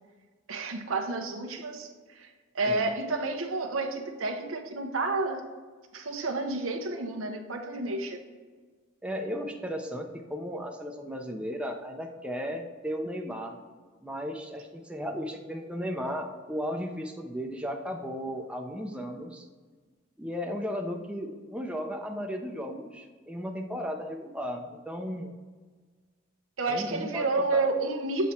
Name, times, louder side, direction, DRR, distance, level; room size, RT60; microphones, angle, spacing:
voice 1, 0.5-1.9 2.2-5.4 5.9-8.2 26.6-28.3, right 3 dB, 85° right, 4 dB, 0.9 m, -30 dB
voice 2, 9.0-13.6 14.0-19.4 20.2-25.3 26.7-27.7, equal, 5° right, 2 dB, 0.6 m, -35 dB
7.5 x 4.2 x 4.4 m, 1.4 s
head